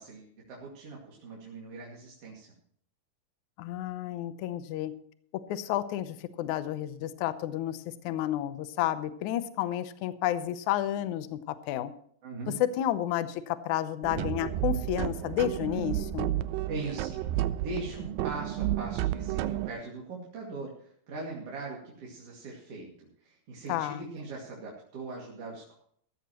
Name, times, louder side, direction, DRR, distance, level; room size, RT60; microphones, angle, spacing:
voice 1, 0.0-2.5 12.2-12.6 16.7-17.2 17.5-25.7, right 3 dB, 45° right, -3 dB, 3.1 m, -40 dB
voice 2, 3.6-4.9 5.5-11.9 12.6-16.4 23.7-24.0, left 12 dB, 70° left, 12 dB, 2.0 m, -31 dB
sound 1, 14.0-19.7, right 13 dB, 90° right, 2.4 m, -31 dB
15.0 x 14.0 x 3.0 m, 0.63 s
omnidirectional pair, 4.0 m